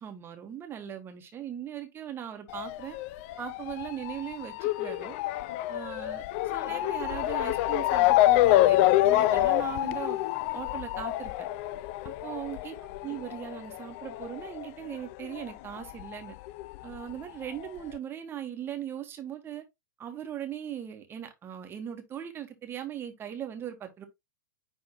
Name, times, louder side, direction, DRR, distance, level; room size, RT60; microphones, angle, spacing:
voice 1, 0.0-3.0 3.4-5.2 5.7-10.2 10.5-11.5 12.0-12.8 13.0-16.3 16.8-19.6 20.0-24.1, right 10 dB, 20° right, 1.3 m, -39 dB
Motor vehicle (road) / Siren, 2.5-15.5 15.8-17.0 17.6-17.7 17.9-18.0, left 15 dB, 40° left, 0.4 m, -27 dB
9.7 x 3.5 x 2.8 m
figure-of-eight pair, 100°, 11 cm